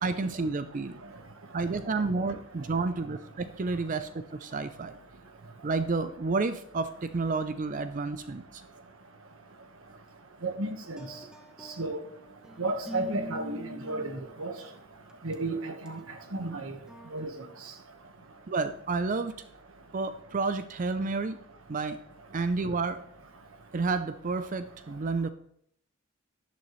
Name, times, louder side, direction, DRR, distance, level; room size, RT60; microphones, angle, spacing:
voice 1, 0.0-1.0 1.5-5.0 5.6-8.6 18.5-19.4 19.9-21.4 21.7-22.0 22.3-23.0 23.7-25.3, right 3 dB, 40° right, 0.5 m, -30 dB
voice 2, 10.4-11.0 11.8-12.0 12.6-14.1 14.4-14.5 15.2-16.0 16.3-16.7 17.1-17.3, right 2 dB, 90° right, 1.3 m, -32 dB
sound 1, 11.0-14.6 15.1-15.3 15.9-16.1 16.9-17.3, left 1 dB, 5° right, 0.9 m, -44 dB
11.5 x 10.5 x 3.2 m
head